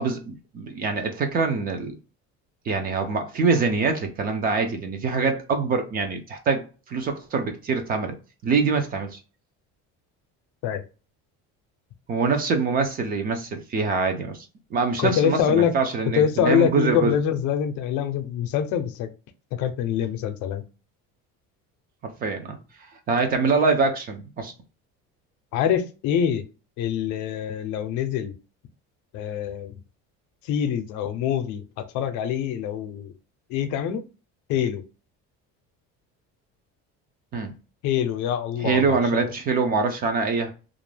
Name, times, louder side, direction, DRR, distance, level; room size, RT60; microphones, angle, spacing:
voice 1, 0.0-1.9 2.7-8.2 8.4-9.2 12.1-14.5 14.7-17.2 22.0-22.6 23.1-24.5 37.3-37.5 38.6-40.5, right 4 dB, 30° right, 0.4 m, -24 dB
voice 2, 15.0-15.7 16.2-19.1 19.6-20.6 25.5-26.4 26.8-28.3 29.1-29.7 30.4-33.1 33.5-34.1 34.5-34.8 37.8-39.2, left 9 dB, 70° left, 0.6 m, -25 dB
2.4 x 2.1 x 3.2 m
cardioid pair, 175°, 30 cm